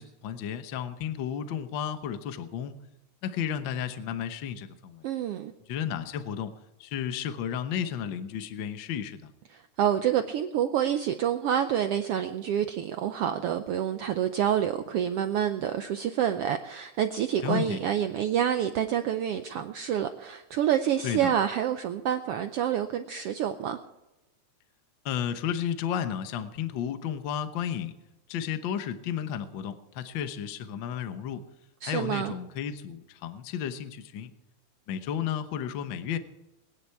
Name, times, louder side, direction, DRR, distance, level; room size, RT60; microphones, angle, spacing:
voice 1, 0.0-2.8 3.2-5.0 5.7-6.5 6.8-9.3 17.4-17.8 21.0-21.3 25.0-27.9 28.3-31.4 31.8-34.3 34.9-36.2, left 9 dB, 65° left, 10 dB, 1.2 m, -33 dB
voice 2, 5.0-5.5 9.5-23.8 31.8-32.3, right 10 dB, 85° right, 8 dB, 1.3 m, -28 dB
21.5 x 10.0 x 4.7 m, 0.98 s
omnidirectional pair, 3.5 m